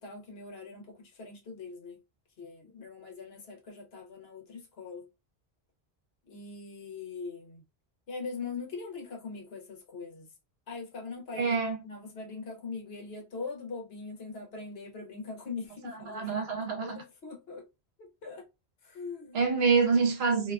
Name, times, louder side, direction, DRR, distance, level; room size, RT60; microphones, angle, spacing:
voice 1, 0.0-2.0 2.4-5.1 6.3-7.6 8.1-10.3 10.7-11.6 11.8-17.7 18.0-18.5 18.8-19.4, left 4 dB, 70° left, 1.1 m, -42 dB
voice 2, 11.4-11.8 16.0-17.0 19.3-20.5, right 5 dB, 75° right, 1.0 m, -26 dB
2.7 x 2.3 x 2.3 m
omnidirectional pair, 1.1 m